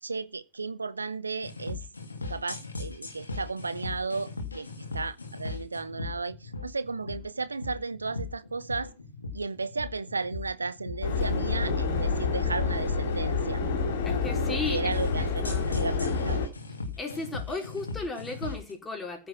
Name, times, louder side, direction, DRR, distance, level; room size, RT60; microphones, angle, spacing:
voice 1, 0.0-1.8 2.3-8.9 9.3-13.6 14.7-16.4, right 4 dB, 80° right, 0.7 m, -34 dB
sound 1, 1.4-18.7, left 3 dB, 80° left, 3.1 m, -38 dB
Subway metro underground, 11.0-16.5, left 4 dB, 60° left, 3.8 m, -28 dB
voice 2, 14.0-15.7 17.0-19.3, left 3 dB, 15° left, 4.7 m, -36 dB
15.0 x 7.3 x 6.2 m
figure-of-eight pair, 90°, 0 cm